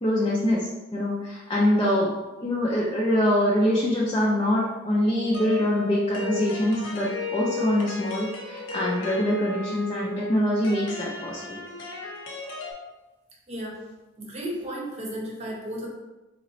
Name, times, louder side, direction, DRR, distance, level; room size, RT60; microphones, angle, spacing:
voice 1, 0.0-2.1 2.4-11.6, equal, 25° left, -5 dB, 0.5 m, -24 dB
sound 1, 5.3-12.7, left 5 dB, 80° left, 0.6 m, -35 dB
voice 2, 13.5-13.8 14.2-15.9, right 1 dB, 35° right, -2 dB, 0.8 m, -34 dB
4.0 x 3.0 x 2.7 m, 1.1 s
head